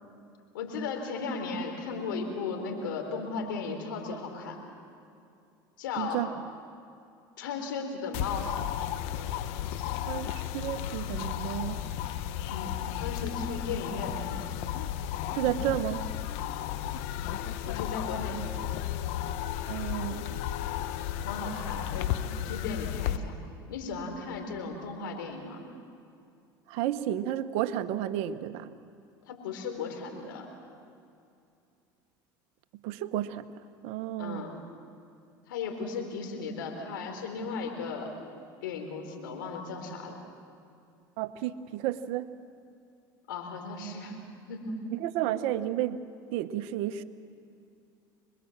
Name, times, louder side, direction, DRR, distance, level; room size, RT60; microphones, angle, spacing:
voice 1, 0.5-4.6 5.8-6.2 7.4-8.6 12.5-14.5 17.7-18.4 21.2-22.2 22.4-23.3 23.7-25.6 29.3-30.5 34.2-34.5 35.5-38.1 38.6-40.2 43.3-44.2 44.5-44.9, left 4 dB, 90° left, 3 dB, 4.1 m, -36 dB
voice 2, 6.0-6.3 10.1-11.8 15.3-16.0 19.7-20.4 26.7-28.7 32.8-33.5 33.8-34.4 41.2-42.3 44.9-46.0 46.3-47.0, right 12 dB, 70° right, 11 dB, 1.1 m, -32 dB
sound 1, 8.1-23.2, left 11 dB, 70° left, 1.1 m, -34 dB
26.0 x 22.0 x 7.4 m, 2.5 s
supercardioid pair, 90°, 11 cm